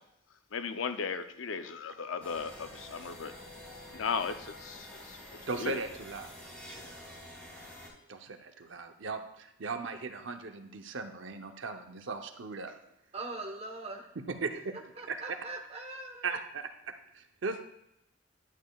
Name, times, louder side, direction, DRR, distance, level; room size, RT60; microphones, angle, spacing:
voice 1, 0.5-3.3 3.9-5.3 5.5-5.8, left 5 dB, 75° left, 0.6 m, -36 dB
sound 1, 2.2-7.9, left 1 dB, 10° left, 2.7 m, -48 dB
voice 2, 5.5-6.3 8.1-12.7 14.3-14.7 15.1-15.2 16.2-17.6, right 4 dB, 70° right, 0.7 m, -38 dB
voice 3, 13.1-14.1 14.5-14.6 15.0-16.4, right 2 dB, 30° right, 1.1 m, -41 dB
11.0 x 8.4 x 2.3 m
head